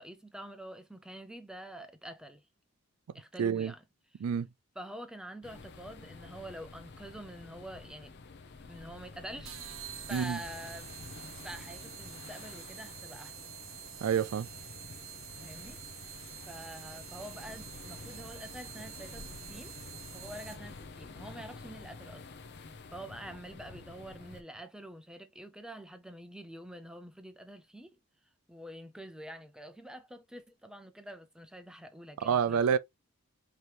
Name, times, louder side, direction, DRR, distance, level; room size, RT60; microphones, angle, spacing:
voice 1, 0.0-2.4 3.1-3.8 4.1-4.2 4.8-8.1 8.6-9.8 10.1-11.0 11.4-13.5 15.4-15.8 16.5-19.8 20.1-22.3 22.9-27.9 28.5-32.7, right 1 dB, 5° right, 0.5 m, -46 dB
voice 2, 3.4-3.7 4.2-4.5 10.1-10.4 14.0-14.5 32.2-32.8, right 7 dB, 75° right, 0.4 m, -28 dB
sound 1, 5.4-24.4, left 3 dB, 50° left, 0.6 m, -49 dB
sound 2, 9.4-20.9, right 10 dB, 60° right, 0.8 m, -47 dB
5.0 x 2.9 x 2.9 m
head